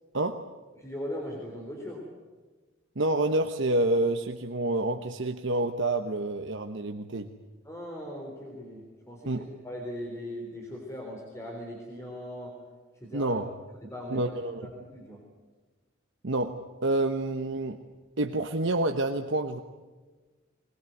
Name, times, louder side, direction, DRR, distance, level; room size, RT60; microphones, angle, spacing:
voice 1, 0.1-0.4 3.0-7.3 9.3-9.4 13.1-13.5 14.1-14.7 16.2-17.8 18.2-19.6, right 2 dB, 60° right, 5 dB, 1.1 m, -28 dB
voice 2, 0.8-2.1 7.6-12.6 13.0-13.3 13.8-14.4 14.8-15.2, equal, 15° left, -1 dB, 3.7 m, -39 dB
21.5 x 20.5 x 9.3 m, 1.3 s
head